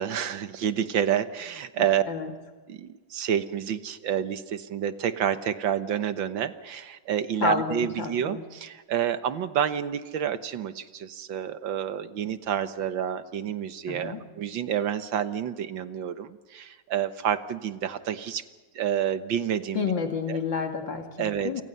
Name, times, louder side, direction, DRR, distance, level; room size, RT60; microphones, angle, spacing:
voice 1, 0.0-2.0 2.7-18.4 18.8-19.9 20.3-20.4 21.2-21.6, right 9 dB, 75° right, 11 dB, 1.9 m, -29 dB
voice 2, 1.8-2.3 7.4-8.4 13.9-14.2 19.7-21.6, left 5 dB, 70° left, 4 dB, 2.9 m, -30 dB
28.5 x 25.0 x 5.6 m, 1.3 s
omnidirectional pair, 2.2 m